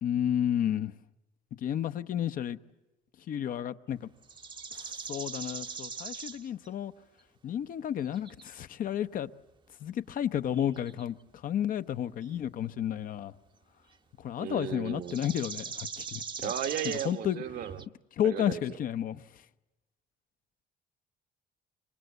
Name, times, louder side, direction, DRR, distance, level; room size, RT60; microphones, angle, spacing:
voice 1, 0.0-0.9 1.6-2.6 3.3-4.1 4.7-6.9 7.4-9.3 9.8-11.2 11.4-13.3 14.2-16.5 17.0-17.4 18.2-19.2, left 10 dB, 55° left, 0.8 m, -32 dB
sound 1, 4.2-6.7 8.1-8.5 10.5-11.1 12.2-12.7 14.9-17.9, right 5 dB, 30° right, 0.8 m, -41 dB
voice 2, 14.4-15.2 16.4-17.8 18.2-18.6, right 10 dB, 65° right, 1.2 m, -35 dB
25.5 x 23.0 x 8.1 m
cardioid pair, 110°, 17 cm